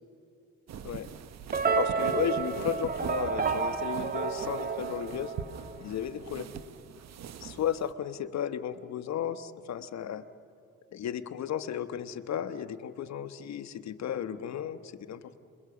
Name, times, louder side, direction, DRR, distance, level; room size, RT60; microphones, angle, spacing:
sound 1, 0.7-7.9, right 8 dB, 60° right, 1.0 m, -43 dB
sound 2, 1.5-5.8, right 5 dB, 30° right, 1.6 m, -30 dB
voice 1, 1.8-5.3 5.8-6.5 7.4-10.2 10.9-15.4, left 9 dB, 65° left, 10 dB, 1.1 m, -34 dB
27.0 x 22.5 x 7.1 m, 2.4 s
cardioid pair, 90°, 30 cm